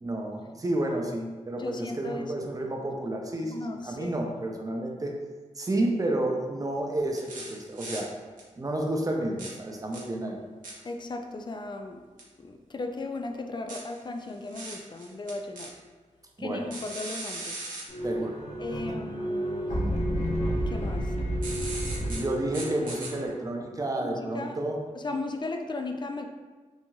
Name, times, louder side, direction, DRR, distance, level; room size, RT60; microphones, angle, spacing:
voice 1, 0.0-3.5 3.8-5.2 5.6-8.1 8.6-10.4 16.4-16.7 18.0-18.4 18.9-19.0 21.9-24.8, right 1 dB, 25° right, 1 dB, 0.5 m, -30 dB
voice 2, 1.6-2.5 3.5-4.3 10.8-12.0 12.4-15.7 16.4-17.6 18.6-20.2 20.7-21.1 24.0-24.6 24.9-26.3, left 2 dB, 35° left, 5 dB, 0.3 m, -36 dB
sound 1, 7.1-8.0 8.4-8.5 9.4-9.5 9.9-10.0 10.6-10.7 12.2-12.3 13.7-15.7 16.7-17.8 21.4-22.2 22.5-23.1, right 2 dB, 80° right, 0.8 m, -38 dB
sound 2, 17.9-23.3, equal, 55° left, 0.8 m, -30 dB
2.9 x 2.6 x 2.3 m, 1.3 s
cardioid pair, 45°, 14 cm